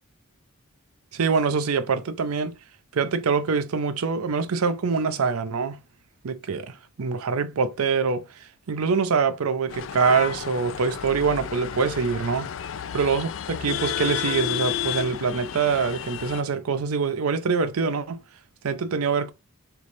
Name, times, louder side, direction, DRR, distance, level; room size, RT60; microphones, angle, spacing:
voice 1, 1.1-2.6 2.9-5.8 6.2-8.3 8.7-12.5 12.9-18.2 18.6-19.3, right 5 dB, 85° right, 0.5 m, -24 dB
sound 1, 9.7-16.4, left 9 dB, 60° left, 0.3 m, -31 dB
3.4 x 3.1 x 4.0 m
head